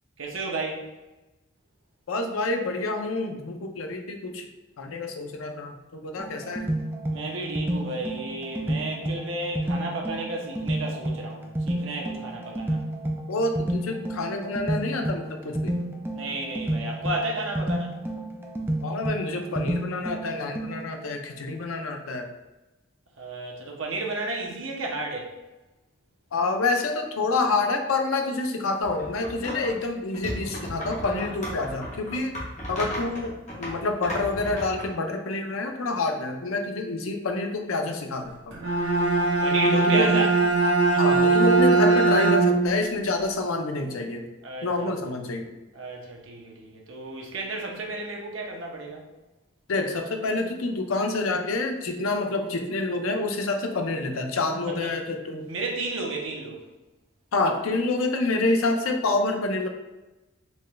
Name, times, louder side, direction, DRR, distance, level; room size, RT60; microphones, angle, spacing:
voice 1, 0.2-0.9 7.1-12.8 16.1-17.9 23.2-25.3 39.4-40.3 43.8-44.0 44.4-45.2 45.7-49.1 54.7-55.0 55.5-56.6, right 2 dB, 75° right, -1 dB, 0.8 m, -32 dB
voice 2, 2.1-4.5 4.8-6.7 13.3-15.8 18.8-22.3 26.3-32.4 32.7-33.3 33.6-38.6 39.7-40.2 40.9-44.2 44.6-45.5 49.7-55.5 57.3-59.7, left 3 dB, 85° left, 5 dB, 0.5 m, -27 dB
sound 1, 6.2-21.1, right 1 dB, 10° right, 0.3 m, -31 dB
sound 2, 28.8-29.8 30.1-34.9, equal, 35° left, 1.1 m, -35 dB
Bowed string instrument, 38.5-42.8, right 3 dB, 55° right, 1.1 m, -20 dB
4.3 x 2.3 x 3.1 m, 1.1 s
head